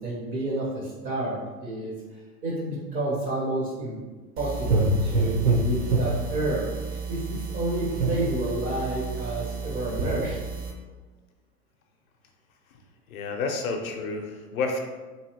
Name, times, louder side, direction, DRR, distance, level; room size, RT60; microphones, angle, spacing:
voice 1, 0.0-1.9 2.4-4.0 4.4-10.4, right 1 dB, 20° right, -4 dB, 0.4 m, -30 dB
sound 1, 4.4-10.7, right 3 dB, 75° right, 0.8 m, -27 dB
voice 2, 13.1-14.8, left 3 dB, 60° left, 3 dB, 0.6 m, -30 dB
2.9 x 2.7 x 2.8 m, 1.3 s
figure-of-eight pair, 95°, 48 cm